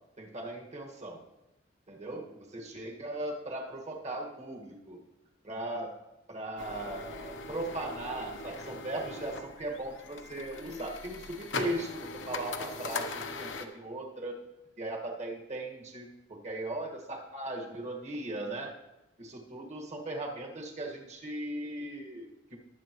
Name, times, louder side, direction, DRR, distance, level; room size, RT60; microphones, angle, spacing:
voice 1, 0.2-1.2 1.9-5.0 5.4-5.9 6.3-14.4 14.8-18.7 19.2-22.6, right 1 dB, 40° right, 0 dB, 1.7 m, -38 dB
sound 1, 6.6-13.7, left 3 dB, 80° left, 0.9 m, -40 dB
20.0 x 7.9 x 3.1 m, 0.97 s
head